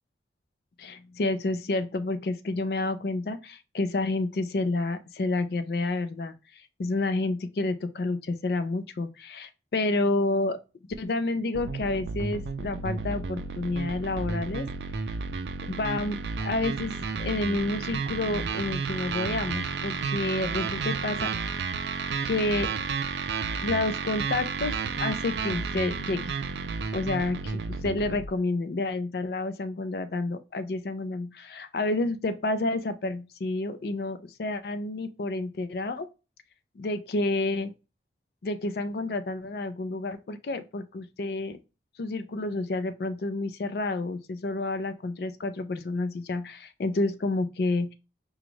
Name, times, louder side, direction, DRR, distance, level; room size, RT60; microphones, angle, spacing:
voice 1, 0.8-6.3 6.8-10.6 11.0-14.7 15.6-21.3 22.3-22.7 23.6-26.3 26.9-36.1 36.8-37.7 38.4-41.6 42.0-47.9, left 2 dB, 60° left, 0.4 m, -29 dB
Cyberpunk Bass, 11.5-28.3, right 5 dB, 75° right, 0.4 m, -32 dB
5.0 x 2.3 x 3.0 m
head